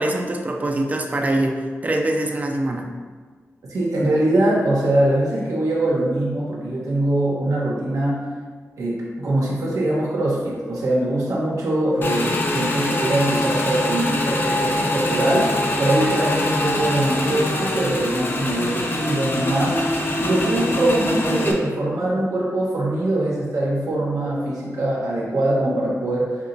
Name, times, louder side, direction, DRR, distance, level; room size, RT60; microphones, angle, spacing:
voice 1, 0.0-2.9, right 1 dB, 30° right, 3 dB, 0.4 m, -23 dB
voice 2, 3.6-8.2 8.8-15.5 15.8-19.8 20.2-26.4, right 1 dB, 90° right, -5 dB, 1.1 m, -22 dB
Motorcycle / Engine, 12.0-21.5, left 1 dB, 40° left, 0.5 m, -24 dB
5.9 x 2.9 x 2.6 m, 1.5 s
wide cardioid pair, 175°, 5 cm